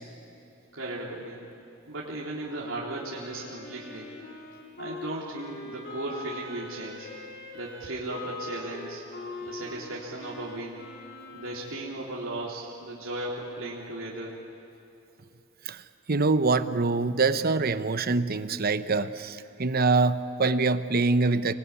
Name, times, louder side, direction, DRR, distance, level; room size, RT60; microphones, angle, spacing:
voice 1, 0.7-1.4 1.9-4.1 4.8-7.1 7.5-9.0 9.4-10.8 11.3-14.3, right 2 dB, 70° right, -5 dB, 3.7 m, -36 dB
Wind instrument woodwind instrument, 3.1-11.9, left 3 dB, 50° left, 3.6 m, -42 dB
voice 2, 16.1-21.5, right 3 dB, 45° right, 12 dB, 0.9 m, -24 dB
26.0 x 21.5 x 9.7 m, 2.9 s
head